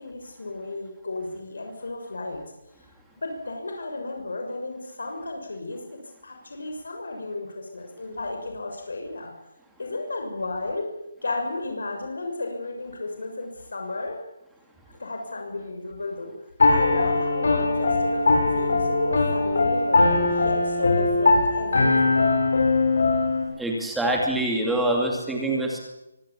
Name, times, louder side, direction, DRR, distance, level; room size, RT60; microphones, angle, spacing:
voice 1, 0.0-2.4 3.2-9.3 9.8-10.9 11.2-14.2 15.0-16.3 16.7-22.3, left 2 dB, 85° left, 3 dB, 6.5 m, -33 dB
Piano, 16.6-23.4, left 3 dB, 55° left, 6.5 m, -21 dB
voice 2, 23.6-25.8, right 1 dB, ahead, 0 dB, 2.6 m, -25 dB
24.5 x 17.5 x 8.6 m, 0.93 s
hypercardioid pair, 180°, 0 cm